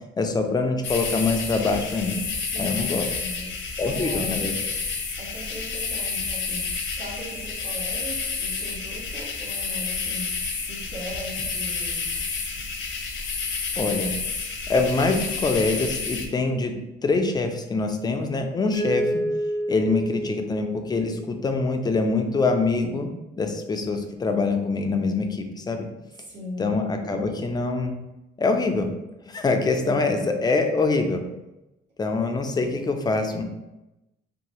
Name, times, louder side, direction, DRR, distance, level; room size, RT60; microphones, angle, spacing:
voice 1, 0.2-2.2 2.6-3.1 3.8-4.5 13.8-14.1 14.7-16.7 17.0-19.2 19.7-23.1 23.4-25.9 26.6-27.9 28.4-28.9 29.3-31.2 32.0-33.4, left 3 dB, 20° left, 5 dB, 0.4 m, -24 dB
sound 1, 0.8-16.3, left 4 dB, 75° left, 0.6 m, -30 dB
voice 2, 2.5-2.9 3.2-3.5 3.8-4.3 5.2-10.3 10.7-12.1 26.2-27.3, equal, 65° right, -7 dB, 1.4 m, -38 dB
Mallet percussion, 18.7-21.6, right 1 dB, 45° right, 1.0 m, -29 dB
2.7 x 2.2 x 3.0 m, 0.95 s
cardioid pair, 90°, 20 cm